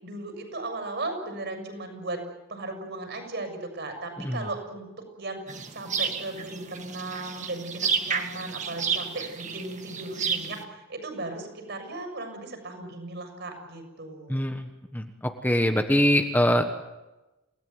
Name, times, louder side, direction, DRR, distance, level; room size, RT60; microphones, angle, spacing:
voice 1, 0.0-2.2 2.5-4.9 5.2-5.4 5.7-14.5, right 2 dB, 55° right, 5 dB, 7.0 m, -36 dB
sound 1, 5.5-10.6, right 6 dB, 35° right, 2.1 m, -31 dB
voice 2, 14.3-14.7 14.9-15.0 15.4-16.7, equal, 10° left, 6 dB, 1.3 m, -23 dB
29.0 x 18.0 x 9.5 m, 1.1 s
head